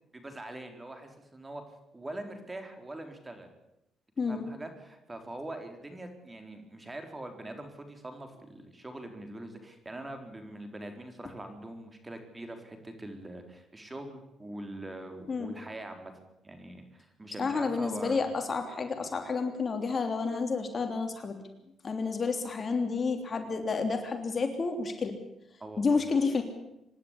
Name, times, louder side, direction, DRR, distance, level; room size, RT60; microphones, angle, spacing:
voice 1, 0.1-1.6 1.9-3.5 4.3-16.1 16.4-18.2 25.6-26.0, right 1 dB, 20° right, 6 dB, 4.2 m, -43 dB
voice 2, 17.4-21.4 21.8-25.2 25.8-26.4, left 4 dB, 40° left, 6 dB, 3.2 m, -30 dB
25.5 x 11.5 x 9.9 m, 0.86 s
cardioid pair, 90°, 0 cm